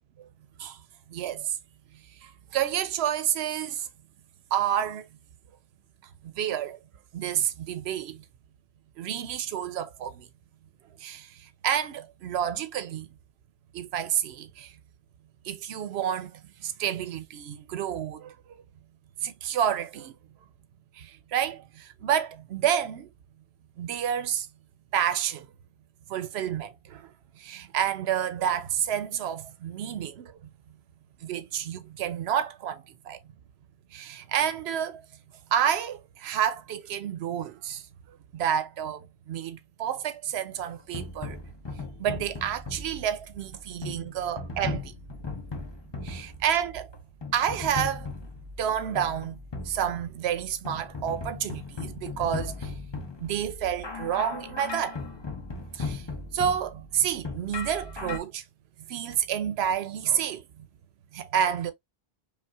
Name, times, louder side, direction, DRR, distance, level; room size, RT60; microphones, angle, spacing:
voice 1, 1.1-1.6 2.2-3.9 4.5-5.1 6.2-6.8 7.1-8.2 9.0-10.3 11.0-13.1 13.7-14.8 15.4-18.6 19.2-20.1 21.0-23.1 23.8-24.5 24.9-25.5 26.1-27.1 27.4-30.3 31.2-33.2 33.9-35.0 35.5-37.9 38.3-41.4 42.0-44.9 46.0-46.9 47.3-48.1 48.6-49.4 49.6-52.7 53.2-55.0 55.7-58.4 58.9-60.6 61.1-61.7, right 9 dB, 80° right, 0.9 m, -29 dB
sound 1, 40.6-58.2, left 3 dB, 30° left, 0.7 m, -38 dB
5.2 x 2.4 x 2.3 m
omnidirectional pair, 1.1 m